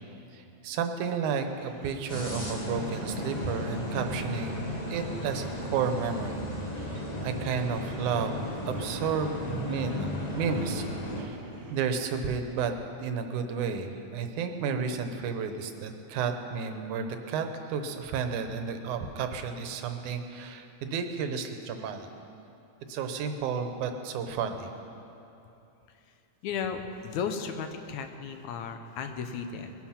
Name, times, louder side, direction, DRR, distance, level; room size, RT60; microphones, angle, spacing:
voice 1, 0.3-4.5 4.9-6.4 6.8-10.9 11.2-11.4 11.7-12.7 13.0-22.1 22.9-24.7, right 6 dB, 90° right, 7 dB, 2.4 m, -32 dB
sound 1, 1.3-12.2, right 3 dB, 55° right, 2.3 m, -52 dB
sound 2, 2.1-11.2, left 1 dB, 35° left, 0.6 m, -35 dB
voice 2, 26.4-29.7, left 6 dB, 75° left, 7 dB, 2.2 m, -35 dB
21.0 x 10.5 x 5.8 m, 2.9 s
omnidirectional pair, 3.4 m